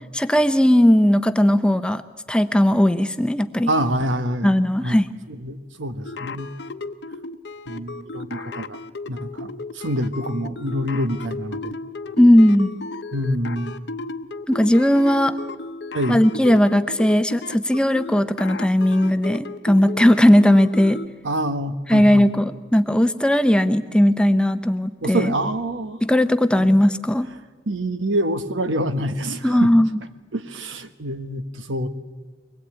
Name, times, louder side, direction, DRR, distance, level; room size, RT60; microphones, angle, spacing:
voice 1, 0.1-2.0 2.3-3.7 4.4-5.1 12.2-12.7 14.5-15.4 16.1-21.0 21.9-25.3 26.0-27.3 29.4-30.0, left 1 dB, 5° left, 10 dB, 0.6 m, -17 dB
voice 2, 3.7-5.0 5.3-6.5 7.7-8.8 9.1-11.8 13.1-13.7 15.9-16.2 21.2-22.3 25.0-26.0 26.5-26.7 27.7-29.7 30.3-31.9, right 1 dB, 85° right, 10 dB, 1.3 m, -26 dB
sound 1, 6.0-21.1, left 3 dB, 65° left, 0.9 m, -34 dB
23.5 x 20.0 x 8.8 m, 1.3 s
head